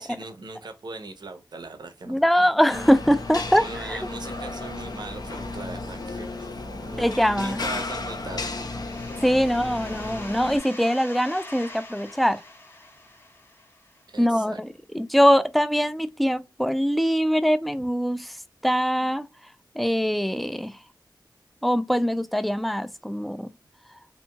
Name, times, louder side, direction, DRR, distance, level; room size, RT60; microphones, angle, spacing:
voice 1, 0.0-2.4 2.7-2.9 3.6-6.6 6.8-8.5 14.1-14.6, right 3 dB, 65° right, 0.6 m, -40 dB
voice 2, 2.1-4.0 7.0-7.6 9.2-12.4 14.2-20.8 21.6-23.5, equal, ahead, 0.3 m, -23 dB
sound 1, 2.7-10.6, left 2 dB, 60° left, 0.6 m, -34 dB
sound 2, 8.9-14.4, left 1 dB, 30° left, 0.7 m, -44 dB
2.9 x 2.6 x 2.2 m
wide cardioid pair, 65°, 8 cm